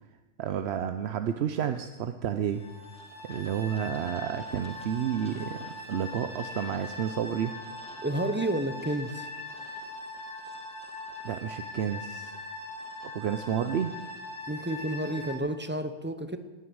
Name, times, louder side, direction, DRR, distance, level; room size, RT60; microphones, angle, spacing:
voice 1, 0.4-2.6 3.2-7.5 11.2-12.3 13.0-14.0, right 9 dB, 60° right, 9 dB, 0.8 m, -31 dB
sound 1, 2.6-15.4, left 2 dB, 5° left, 1.8 m, -41 dB
voice 2, 8.0-9.3 14.5-16.4, right 1 dB, 10° right, 9 dB, 0.6 m, -30 dB
18.5 x 9.4 x 6.3 m, 1.2 s
omnidirectional pair, 1.5 m